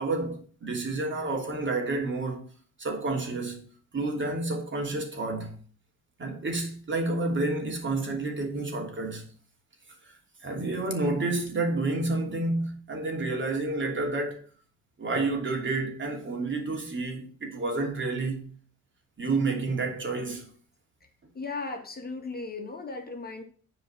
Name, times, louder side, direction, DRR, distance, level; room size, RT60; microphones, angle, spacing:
voice 1, 0.0-2.5 2.8-3.7 3.9-5.6 6.2-9.2 10.4-14.4 15.0-18.5 19.2-20.5, right 2 dB, 40° right, 2.9 m, -30 dB
voice 2, 21.3-23.4, left 3 dB, 30° left, 2.0 m, -36 dB
8.0 x 4.8 x 7.4 m
cardioid pair, 90°, 30 cm